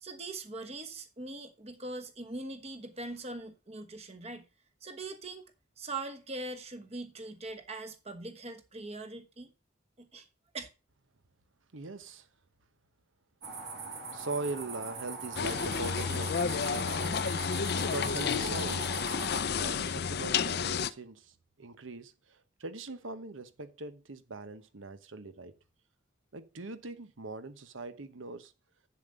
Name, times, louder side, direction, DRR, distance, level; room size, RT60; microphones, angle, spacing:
voice 1, 0.0-4.4 4.8-5.4 5.8-9.5 10.0-10.3 10.5-10.7, right 2 dB, 30° right, 1.2 m, -41 dB
voice 2, 11.7-12.3 14.1-17.2 17.8-18.9 19.6-25.5 26.3-28.5, right 3 dB, 80° right, 1.0 m, -41 dB
sound 1, 13.4-19.4, right 4 dB, 55° right, 2.7 m, -41 dB
sound 2, 15.3-20.9, left 6 dB, 55° left, 0.5 m, -31 dB
7.8 x 7.3 x 5.1 m
head